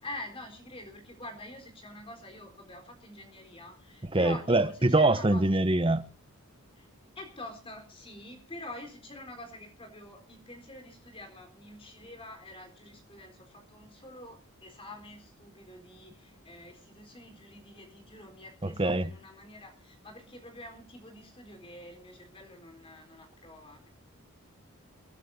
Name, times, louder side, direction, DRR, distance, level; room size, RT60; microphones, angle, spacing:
voice 1, 0.0-5.6 6.8-6.9 7.2-23.9, left 1 dB, 25° left, 4.1 m, -46 dB
voice 2, 4.1-6.0 18.6-19.1, right 2 dB, 25° right, 0.9 m, -24 dB
29.5 x 11.5 x 2.7 m
head